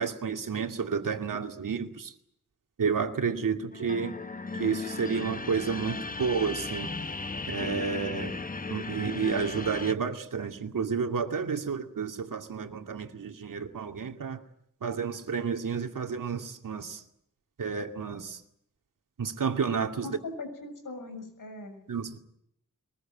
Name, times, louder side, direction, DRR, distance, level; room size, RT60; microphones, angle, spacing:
voice 1, 0.0-2.1 2.8-4.1 4.5-6.9 7.5-8.3 8.7-14.4 14.8-17.0 17.6-18.4 19.2-20.2 21.9-22.2, right 6 dB, 80° right, 2.5 m, -31 dB
sound 1, 3.7-9.9, left 3 dB, 25° left, 0.9 m, -36 dB
voice 2, 20.0-21.8, left 3 dB, 85° left, 7.0 m, -40 dB
23.0 x 21.0 x 8.8 m
wide cardioid pair, 115°, 32 cm